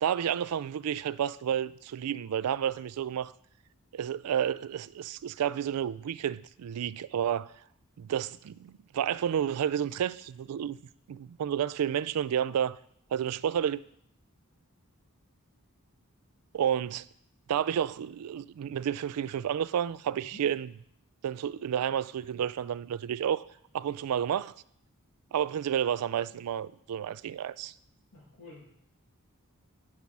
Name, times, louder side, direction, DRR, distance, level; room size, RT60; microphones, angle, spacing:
voice 1, 0.0-3.3 3.9-7.5 8.0-10.8 11.1-12.8 13.1-13.8 16.5-17.1 17.5-20.7 21.2-23.4 23.7-24.5 25.3-27.7, right 9 dB, 90° right, 0.3 m, -30 dB
voice 2, 28.1-28.6, left 2 dB, 70° left, 2.2 m, -50 dB
11.0 x 5.6 x 4.7 m
head